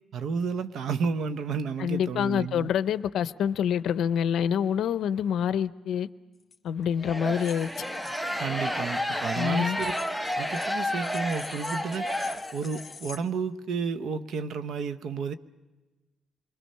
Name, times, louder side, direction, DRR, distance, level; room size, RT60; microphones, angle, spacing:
voice 1, 0.1-2.7 8.3-9.9 10.4-15.3, right 5 dB, 70° right, 0.8 m, -32 dB
voice 2, 1.8-6.1 6.6-7.9 9.3-9.8, left 8 dB, 75° left, 0.6 m, -26 dB
sound 1, 6.4-6.6 7.4-8.3 9.7-13.2, left 5 dB, 40° left, 1.8 m, -47 dB
sound 2, 7.0-12.9, equal, ahead, 0.8 m, -31 dB
27.0 x 21.5 x 5.6 m
cardioid pair, 90°, 0 cm